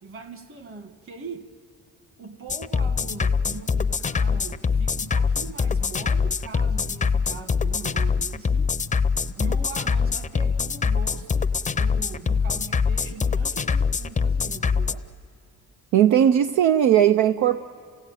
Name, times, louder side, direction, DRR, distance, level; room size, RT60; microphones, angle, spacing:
voice 1, 0.0-1.5 2.2-8.8 9.4-15.1, right 4 dB, 45° right, 8 dB, 1.9 m, -41 dB
sound 1, 2.5-14.9, left 5 dB, 25° left, 0.6 m, -23 dB
voice 2, 15.9-17.6, right 10 dB, 80° right, 9 dB, 0.6 m, -18 dB
28.0 x 17.0 x 9.1 m, 2.1 s
cardioid pair, 90°, 30 cm